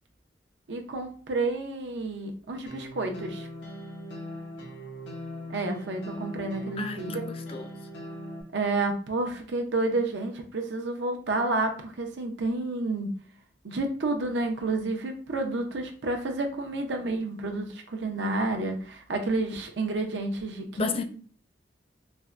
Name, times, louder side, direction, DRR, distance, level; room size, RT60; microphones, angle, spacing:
voice 1, 0.7-3.5 5.5-7.3 8.5-13.1 13.6-21.0, right 2 dB, 70° right, 0.6 m, -30 dB
sound 1, 2.7-8.4, left 1 dB, 90° left, 0.8 m, -40 dB
voice 2, 6.8-7.7 20.8-21.0, left 4 dB, 30° left, 0.3 m, -32 dB
4.3 x 2.1 x 2.4 m
head